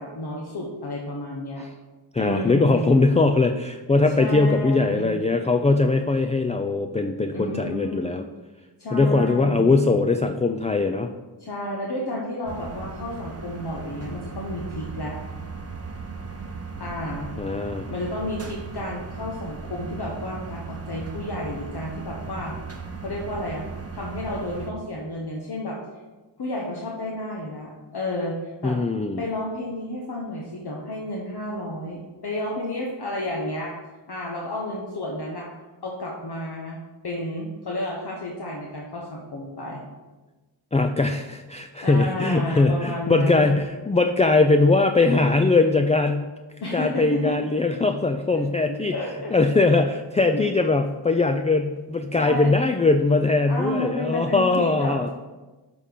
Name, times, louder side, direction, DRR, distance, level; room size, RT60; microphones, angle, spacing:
voice 1, 0.0-1.6 2.2-2.9 4.2-5.2 7.3-8.1 8.8-9.7 11.4-15.2 16.8-17.3 17.9-22.6 23.0-23.6 23.9-25.8 26.4-28.8 29.1-33.7 34.1-35.5 35.8-39.8 41.8-43.6 46.6-47.4 48.7-49.3 50.3-50.4 52.1-52.5 53.5-55.1, left 1 dB, 55° left, -2 dB, 1.1 m, -31 dB
voice 2, 2.1-8.2 8.9-11.1 17.4-17.9 28.6-29.2 40.7-46.3 46.7-48.9 49.3-55.1, left 3 dB, 15° left, 6 dB, 0.3 m, -21 dB
sound 1, 12.5-24.7, right 4 dB, 30° right, 0.8 m, -37 dB
7.2 x 4.3 x 5.1 m, 1.2 s
wide cardioid pair, 60°, 46 cm